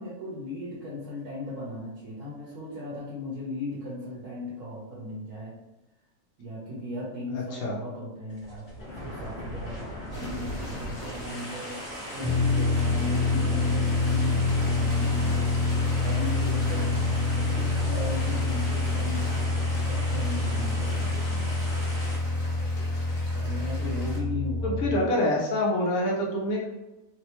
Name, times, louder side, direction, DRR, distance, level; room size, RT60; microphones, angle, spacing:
voice 1, 0.0-5.6 6.4-9.8 10.1-11.8 12.1-15.6 16.0-19.3 19.8-22.0 23.3-25.2, left 1 dB, 70° right, -7 dB, 1.3 m, -37 dB
voice 2, 7.3-7.8 24.6-26.7, left 1 dB, 70° left, -2 dB, 1.2 m, -26 dB
sound 1, 8.3-22.2, equal, 50° left, 2.0 m, -39 dB
sound 2, 10.1-24.2, left 1 dB, 30° left, 0.8 m, -44 dB
sound 3, 12.2-25.0, left 3 dB, 5° left, 0.4 m, -26 dB
4.1 x 2.0 x 2.9 m, 0.99 s
omnidirectional pair, 1.7 m